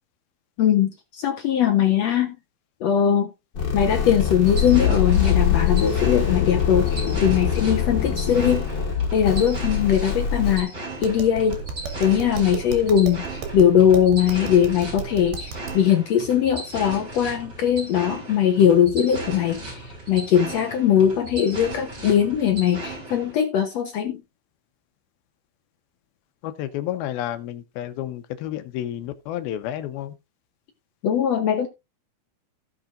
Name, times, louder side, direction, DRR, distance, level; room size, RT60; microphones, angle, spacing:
voice 1, 0.6-2.4 2.8-3.3 3.7-8.7 9.1-10.7 11.0-11.6 12.0-24.2 31.0-31.7, left 9 dB, 70° left, 1.6 m, -20 dB
sound 1, 3.5-10.6, left 7 dB, 35° left, 2.2 m, -23 dB
sound 2, 4.2-23.3, right 2 dB, 25° right, 4.9 m, -37 dB
Tap, 10.9-15.9, right 6 dB, 85° right, 4.0 m, -34 dB
voice 2, 26.4-30.1, left 12 dB, 90° left, 2.9 m, -31 dB
17.0 x 6.2 x 2.5 m
omnidirectional pair, 4.2 m